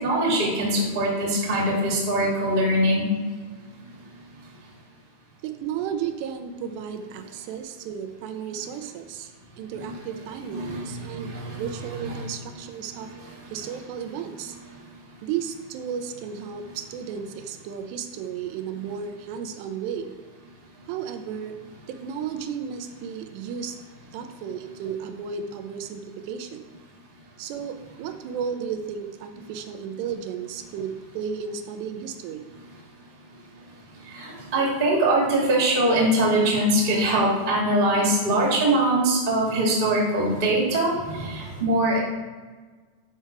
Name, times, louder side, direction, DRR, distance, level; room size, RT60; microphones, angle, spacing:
voice 1, 0.0-3.0 9.7-10.0 10.4-10.8 11.1-12.1 12.9-13.0 34.1-42.0, right 1 dB, 25° right, -4 dB, 1.0 m, -22 dB
voice 2, 5.4-9.3 9.6-13.1 13.5-14.6 15.2-20.1 20.9-21.6 21.9-23.8 24.1-26.6 27.4-32.4, right 7 dB, 85° right, 7 dB, 2.7 m, -33 dB
7.8 x 5.6 x 4.6 m, 1.4 s
omnidirectional pair, 4.9 m